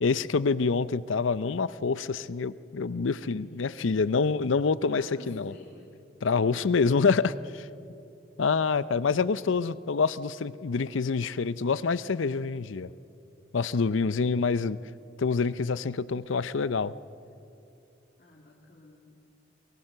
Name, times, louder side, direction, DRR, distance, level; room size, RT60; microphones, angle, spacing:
voice 1, 0.0-5.5 6.2-7.7 8.4-12.9 13.5-14.8 15.2-16.9, left 4 dB, 85° left, 17 dB, 0.6 m, -26 dB
voice 2, 3.4-4.3 4.9-6.0 6.4-6.9 18.2-19.4, left 1 dB, 50° left, -2 dB, 2.6 m, -53 dB
23.5 x 22.5 x 6.7 m, 2.8 s
head